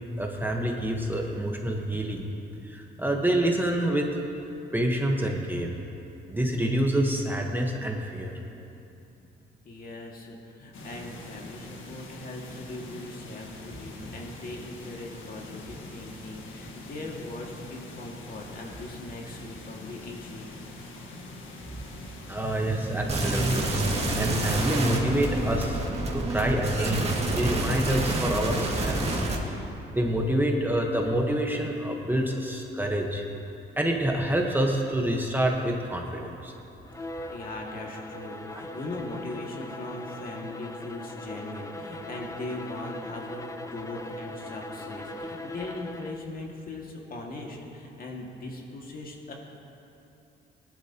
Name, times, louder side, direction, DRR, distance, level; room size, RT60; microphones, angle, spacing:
voice 1, 0.2-2.3 2.6-4.1 4.7-5.8 6.3-8.3 14.0-14.1 22.3-25.8 26.1-29.2 29.9-33.2 33.8-36.5, right 1 dB, 10° right, 0 dB, 1.2 m, -27 dB
voice 2, 9.7-20.5 37.0-49.3, left 2 dB, 45° left, -1 dB, 2.1 m, -40 dB
sound 1, 10.7-25.9, left 2 dB, 80° left, 1.5 m, -44 dB
sound 2, 23.1-29.3, right 2 dB, 30° right, 2.1 m, -28 dB
Bowed string instrument, 36.8-46.3, left 1 dB, 15° left, 0.6 m, -40 dB
18.5 x 11.5 x 3.0 m, 2.8 s
cardioid pair, 90°, 20 cm